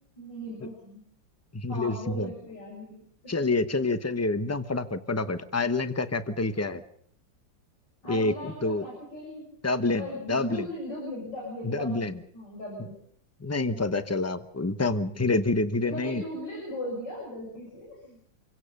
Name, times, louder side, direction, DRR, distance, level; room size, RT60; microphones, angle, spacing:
voice 1, 0.2-1.0 1.7-3.5 8.0-9.5 9.9-13.0 13.7-14.1 15.8-18.2, left 1 dB, 65° left, -3 dB, 7.3 m, -38 dB
voice 2, 1.5-2.3 3.3-6.8 8.1-8.3 8.6-8.8 9.6-10.7 11.6-12.1 13.4-16.2, left 2 dB, 15° left, 11 dB, 0.5 m, -27 dB
27.0 x 17.0 x 6.7 m, 0.64 s
omnidirectional pair, 2.1 m